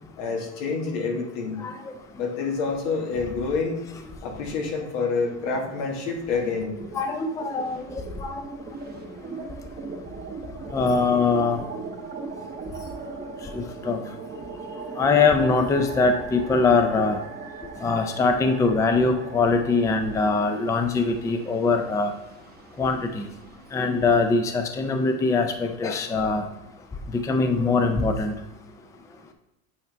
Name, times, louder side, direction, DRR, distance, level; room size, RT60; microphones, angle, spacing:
voice 1, 0.2-1.6 2.1-3.8 4.2-6.8, left 4 dB, 85° left, 1 dB, 1.8 m, -27 dB
sound 1, 5.1-5.9 6.2-24.2, right 4 dB, 25° right, 0.7 m, -40 dB
voice 2, 6.9-8.4 9.3-9.4 10.7-11.6 13.5-14.0 15.0-17.2 17.8-22.1 22.8-23.3 23.7-26.4 27.1-28.3, left 4 dB, 10° left, 6 dB, 0.4 m, -22 dB
8.4 x 4.4 x 3.3 m, 0.97 s
cardioid pair, 145°, 36 cm